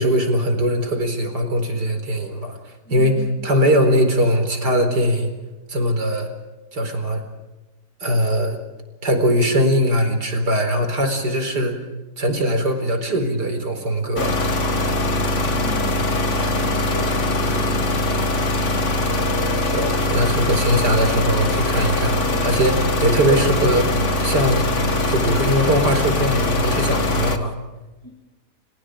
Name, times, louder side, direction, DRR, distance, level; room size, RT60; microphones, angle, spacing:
voice 1, 0.0-5.3 5.7-6.3 6.7-7.2 8.0-8.6 9.0-11.8 12.2-14.3 19.7-23.9 24.2-24.7 25.1-27.6, equal, 75° right, 6 dB, 5.1 m, -21 dB
voice 2, 2.8-3.9 15.5-18.7 22.1-22.4 28.0-28.1, equal, 15° left, -4 dB, 7.4 m, -39 dB
sound 1, 14.2-27.4, left 1 dB, 45° left, 2.2 m, -21 dB
30.0 x 29.5 x 5.1 m, 1.1 s
omnidirectional pair, 1.8 m